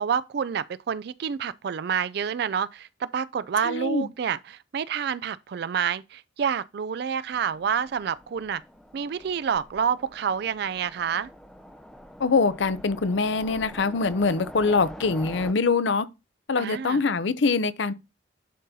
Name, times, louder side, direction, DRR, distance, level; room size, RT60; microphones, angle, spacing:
voice 1, 0.0-8.6 8.9-11.3 16.6-17.0, right 7 dB, 55° right, 0.3 m, -28 dB
voice 2, 3.6-4.1 12.2-16.1 16.5-17.9, left 4 dB, 65° left, 0.6 m, -24 dB
Train, 7.3-15.5, equal, 5° left, 0.5 m, -45 dB
11.0 x 3.8 x 2.7 m
head